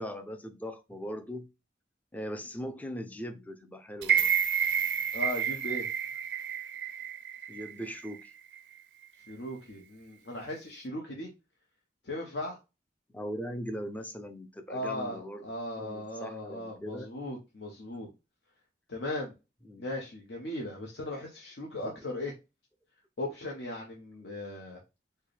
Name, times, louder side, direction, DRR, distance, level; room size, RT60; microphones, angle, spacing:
voice 1, 0.0-1.5 2.1-4.3 7.5-8.3 13.1-15.5 15.8-17.1 19.6-19.9 21.8-21.9, equal, 10° left, 0.4 m, -39 dB
sound 1, 4.0-8.1 8.5-8.6, right 8 dB, 70° right, 0.4 m, -30 dB
voice 2, 5.1-5.9 9.3-11.3 12.0-12.6 14.7-18.1 18.9-19.3 19.8-22.3 23.2-24.8, left 1 dB, 75° left, 0.9 m, -37 dB
4.4 x 2.2 x 3.2 m
head